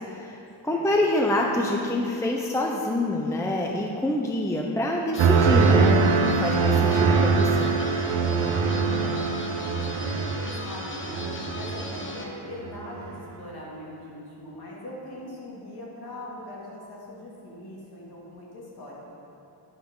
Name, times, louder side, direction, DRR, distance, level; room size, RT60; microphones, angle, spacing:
voice 1, 0.1-6.0 6.3-7.7, left 1 dB, 5° left, 0 dB, 0.5 m, -26 dB
sound 1, 5.1-12.2, left 2 dB, 25° left, 0.9 m, -38 dB
sound 2, 5.2-12.2 12.6-13.1, right 4 dB, 80° right, 0.8 m, -23 dB
voice 2, 8.5-10.1 10.6-18.9, left 1 dB, 50° left, -5 dB, 2.7 m, -41 dB
11.0 x 9.5 x 3.8 m, 2.8 s
wide cardioid pair, 150°, 47 cm